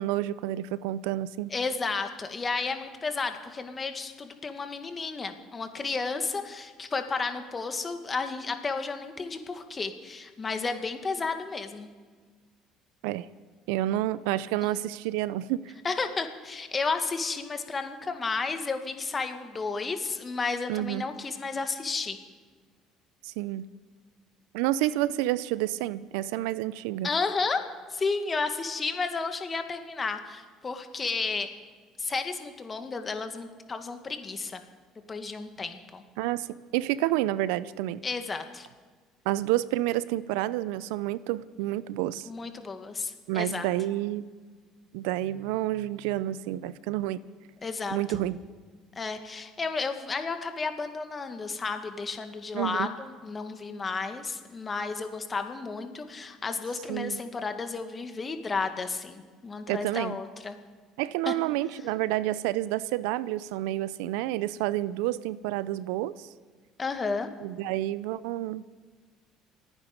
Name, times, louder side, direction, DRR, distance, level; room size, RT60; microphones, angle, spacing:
voice 1, 0.0-1.5 13.0-13.3 13.7-15.6 20.7-21.0 23.2-23.7 24.5-27.1 36.2-38.0 39.3-42.3 43.3-44.2 44.9-47.2 47.9-48.4 52.5-52.9 56.9-57.2 59.7-60.2 61.0-66.3 67.4-68.6, right 15 dB, 80° right, 18 dB, 0.5 m, -29 dB
voice 2, 1.5-11.9 15.8-22.2 27.0-31.5 32.0-34.6 35.1-36.0 38.0-38.7 42.3-43.7 47.6-48.2 49.0-60.6 61.3-61.4 66.8-67.3, left 4 dB, 30° left, 7 dB, 1.9 m, -32 dB
27.5 x 9.9 x 5.3 m, 1.5 s
supercardioid pair, 75°, 0 cm